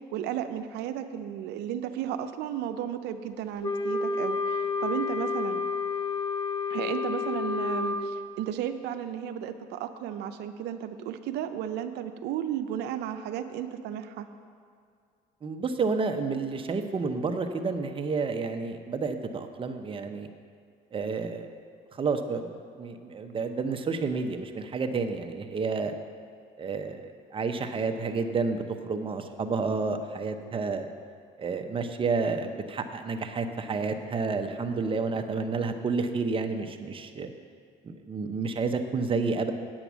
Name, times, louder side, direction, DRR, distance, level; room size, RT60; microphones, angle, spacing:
voice 1, 0.1-5.6 6.7-14.3, right 10 dB, 85° right, 8 dB, 0.6 m, -34 dB
Wind instrument woodwind instrument, 3.6-8.1, left 4 dB, 30° left, 0.7 m, -30 dB
voice 2, 15.4-20.3 20.9-21.5 21.9-25.9 26.6-30.9 31.4-37.3 37.8-39.5, right 4 dB, 30° right, 6 dB, 0.8 m, -30 dB
8.7 x 8.1 x 6.1 m, 2.2 s
cardioid pair, 110°, 17 cm